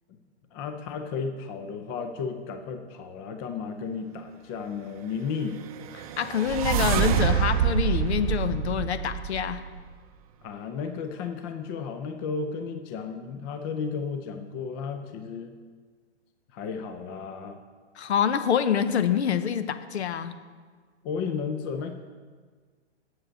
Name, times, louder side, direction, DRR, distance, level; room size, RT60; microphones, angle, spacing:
voice 1, 0.5-5.6 10.4-15.6 16.5-17.6 21.0-21.9, left 5 dB, 20° left, 7 dB, 0.5 m, -33 dB
sound 1, 5.6-9.8, right 9 dB, 30° right, 0.6 m, -26 dB
voice 2, 6.2-9.6 18.0-20.3, left 8 dB, 65° left, 11 dB, 1.0 m, -26 dB
7.7 x 7.6 x 8.0 m, 1.5 s
hypercardioid pair, 145°, 35 cm